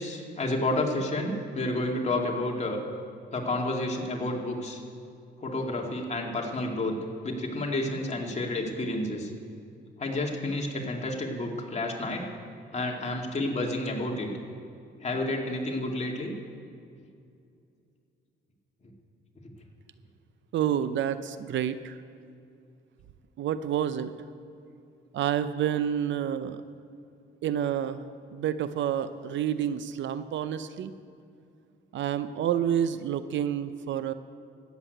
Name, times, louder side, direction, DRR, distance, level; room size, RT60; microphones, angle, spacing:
voice 1, 0.0-2.8 3.3-4.8 5.4-7.0 7.2-9.3 10.0-12.2 12.7-14.3 15.0-16.3, left 2 dB, 35° left, 0 dB, 2.3 m, -30 dB
voice 2, 20.5-22.0 23.4-24.1 25.1-26.6 27.4-28.0 28.3-30.9 31.9-34.1, right 9 dB, 70° right, 12 dB, 0.7 m, -29 dB
13.5 x 8.2 x 9.2 m, 2.5 s
cardioid pair, 90°, 20 cm